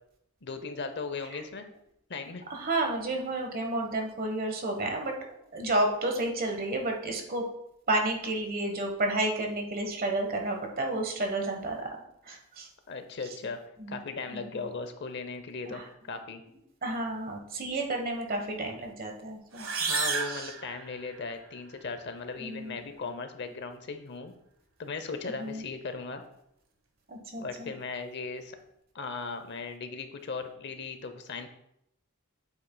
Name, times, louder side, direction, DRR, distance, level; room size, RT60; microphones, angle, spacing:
voice 1, 0.4-1.7 2.1-2.4 12.9-13.6 13.9-15.8 16.1-16.4 19.8-24.3 24.8-26.2 27.4-28.6 28.9-31.5, left 4 dB, 55° left, 8 dB, 0.7 m, -37 dB
voice 2, 2.5-5.1 5.5-7.4 7.9-11.9 12.2-12.7 13.8-14.0 14.3-14.6 15.6-15.9 16.8-19.7 20.2-20.5 22.4-22.8 25.4-25.6 27.1-27.7, right 2 dB, 45° right, 3 dB, 1.3 m, -31 dB
sound 1, 19.5-21.4, right 5 dB, 70° right, 1.2 m, -32 dB
8.5 x 8.2 x 2.3 m, 0.79 s
head